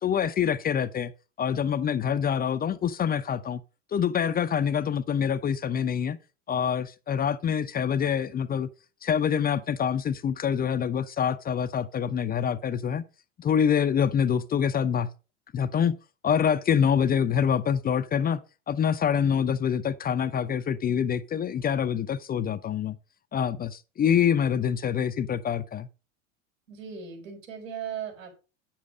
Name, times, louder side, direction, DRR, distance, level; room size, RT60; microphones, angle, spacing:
voice 1, 0.0-1.1 1.4-3.6 3.9-6.2 6.5-8.7 9.0-13.0 13.4-15.1 15.5-16.0 16.2-23.0 23.3-25.9, left 8 dB, 25° left, 0.6 m, -26 dB
voice 2, 26.7-28.4, right 8 dB, 80° right, 5.3 m, -38 dB
9.3 x 7.3 x 5.0 m
hypercardioid pair, 85°, 39 cm